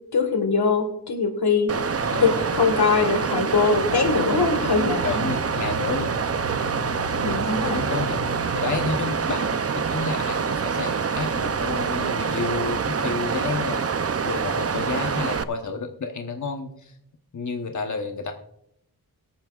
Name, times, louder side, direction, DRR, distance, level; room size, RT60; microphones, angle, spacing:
voice 1, 0.1-5.0 7.2-7.8, left 4 dB, 85° left, 7 dB, 1.7 m, -22 dB
Water, 1.7-15.4, right 6 dB, 40° right, 0.5 m, -26 dB
voice 2, 2.0-2.5 5.0-6.1 7.6-8.2 8.5-13.9 14.2-16.9 17.3-18.3, left 4 dB, 50° left, 4 dB, 1.1 m, -30 dB
sound 1, 3.7-8.9, right 1 dB, 20° right, 3.9 m, -35 dB
22.5 x 8.7 x 2.4 m, 0.77 s
wide cardioid pair, 80°, 38 cm